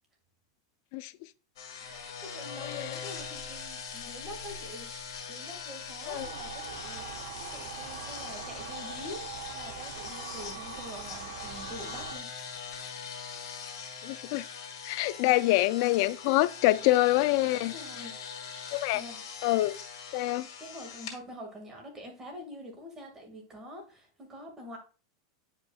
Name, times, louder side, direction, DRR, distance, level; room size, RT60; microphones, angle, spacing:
sound 1, 1.6-21.2, left 6 dB, 70° left, 2.0 m, -42 dB
voice 1, 1.8-12.6 15.3-15.4 16.7-16.9 17.7-18.2 18.9-19.2 20.6-24.8, left 1 dB, 15° right, 2.0 m, -46 dB
sound 2, 6.1-12.2, right 8 dB, 80° right, 0.6 m, -43 dB
voice 2, 14.0-14.4 14.8-17.7 18.7-19.0 19.4-19.8 20.1-20.5, left 17 dB, 55° left, 0.4 m, -26 dB
9.2 x 5.2 x 2.3 m
supercardioid pair, 130°, 2 cm